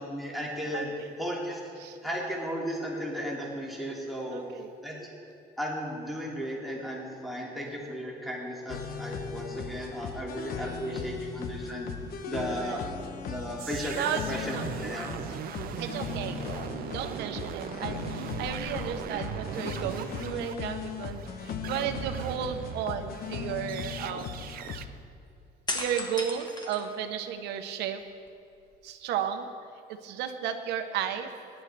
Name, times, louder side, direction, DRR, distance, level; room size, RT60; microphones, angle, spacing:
voice 1, 0.0-0.9 1.2-1.6 2.0-4.4 4.8-5.1 5.6-11.9 12.3-12.8 13.3-15.1 21.6-21.8, equal, ahead, -4 dB, 2.6 m, -35 dB
voice 2, 0.7-1.1 1.8-2.0 4.3-4.7 10.6-11.1 12.5-12.9 13.9-14.7 15.8-16.4 16.9-24.9 25.7-28.0 28.8-29.5 29.9-31.3, right 8 dB, 85° right, 6 dB, 1.0 m, -34 dB
sound 1, 8.7-24.9, left 6 dB, 65° left, 1.0 m, -38 dB
sound 2, 13.6-22.8 23.1-24.9, right 10 dB, 60° right, 0.6 m, -39 dB
sound 3, 15.6-15.9 16.3-17.1 18.3-19.6 19.9-20.0 25.7-27.5 28.0-28.9, left 2 dB, 25° left, 1.5 m, -39 dB
20.0 x 10.5 x 3.4 m, 2.4 s
cardioid pair, 110°, 17 cm